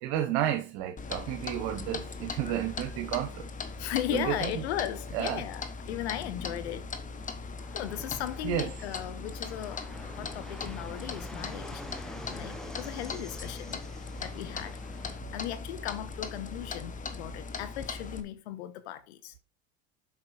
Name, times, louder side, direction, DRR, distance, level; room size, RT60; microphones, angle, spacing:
voice 1, 0.0-3.4 4.1-4.5 5.1-5.4 8.4-8.7, right 11 dB, 70° right, 1.5 m, -31 dB
Clock, 1.0-18.2, left 4 dB, 25° left, 1.2 m, -39 dB
voice 2, 3.8-6.9 7.7-9.8 10.2-11.8 12.3-13.8 14.2-14.8 15.3-19.3, left 12 dB, 90° left, 1.2 m, -36 dB
Fixed-wing aircraft airplane, 7.6-15.2, equal, ahead, 1.0 m, -46 dB
7.9 x 6.0 x 4.9 m
supercardioid pair, 110°, 32 cm